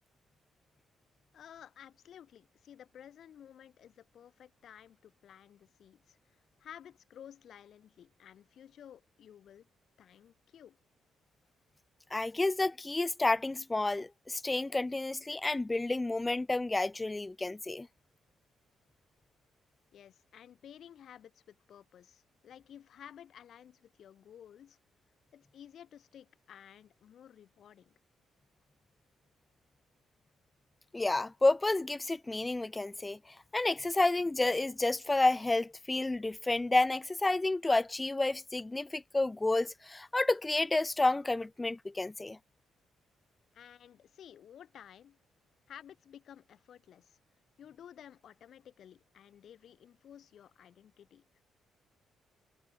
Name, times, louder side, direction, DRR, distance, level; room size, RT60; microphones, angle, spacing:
voice 1, 1.3-9.7 10.0-10.8 19.9-24.8 25.3-27.9 43.5-45.2 45.7-47.2 47.6-51.4, left 9 dB, 65° left, 3.9 m, -54 dB
voice 2, 12.1-17.9 30.9-33.2 33.5-42.4, left 2 dB, 15° left, 0.6 m, -30 dB
cardioid pair, 90°, 0 cm